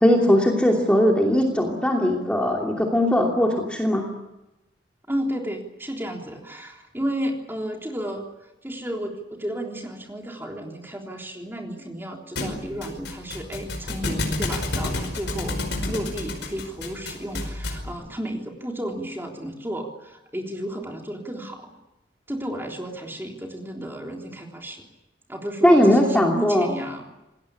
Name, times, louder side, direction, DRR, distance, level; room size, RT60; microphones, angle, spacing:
voice 1, 0.0-4.0 25.6-26.7, equal, 5° left, 0 dB, 2.8 m, -19 dB
voice 2, 5.1-8.3 8.6-21.7 22.3-24.8 25.3-27.1, equal, 10° right, 1 dB, 3.6 m, -33 dB
Thump thud, 12.4-17.9, left 2 dB, 75° left, 5.2 m, -30 dB
27.5 x 19.5 x 8.6 m, 0.97 s
head